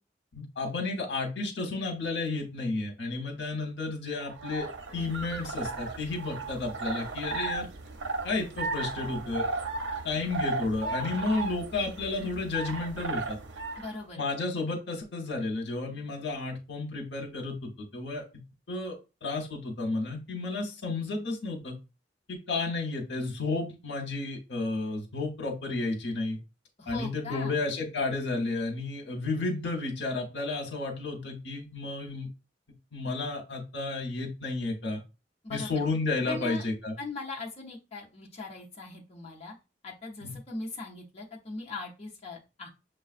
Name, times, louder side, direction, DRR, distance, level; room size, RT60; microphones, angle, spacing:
voice 1, 0.3-4.7 4.9-7.7 8.2-9.4 10.0-13.4 14.2-18.4 18.7-21.8 22.3-26.4 26.9-32.3 32.9-35.0 35.5-37.0 40.2-40.3, left 3 dB, 80° left, 1 dB, 1.0 m, -32 dB
sound 1, 4.2-14.0, right 3 dB, 85° right, 0.6 m, -35 dB
voice 2, 13.8-14.2 26.8-27.6 35.4-35.8 36.2-36.6 37.0-39.5 39.8-42.7, left 3 dB, 35° left, -3 dB, 0.9 m, -40 dB
6.3 x 2.3 x 2.4 m, 0.28 s
head